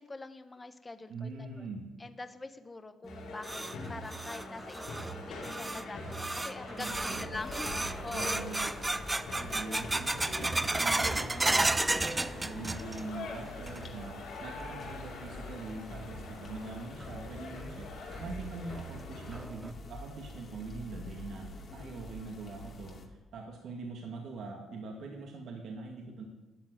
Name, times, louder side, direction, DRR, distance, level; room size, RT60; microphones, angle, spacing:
voice 1, 0.0-1.7 2.0-3.6 3.9-8.5 21.7-21.9, left 3 dB, 20° left, 9 dB, 1.1 m, -44 dB
voice 2, 1.1-1.9 6.8-7.3 8.1-8.7 9.5-17.9 18.2-26.2, right 3 dB, 70° right, 0 dB, 2.2 m, -43 dB
sound 1, 3.0-13.2 13.5-14.1 14.5-14.6 15.3-15.4 17.0-17.1 17.6-17.7 18.1-18.2 18.7-18.8 19.3-19.7, right 2 dB, 15° right, 0.6 m, -33 dB
sound 2, 3.1-19.5, left 2 dB, 85° left, 4.9 m, -44 dB
sound 3, 7.3-23.1, left 2 dB, 50° left, 2.3 m, -48 dB
13.0 x 7.9 x 9.5 m, 1.1 s
cardioid pair, 90°, 0 cm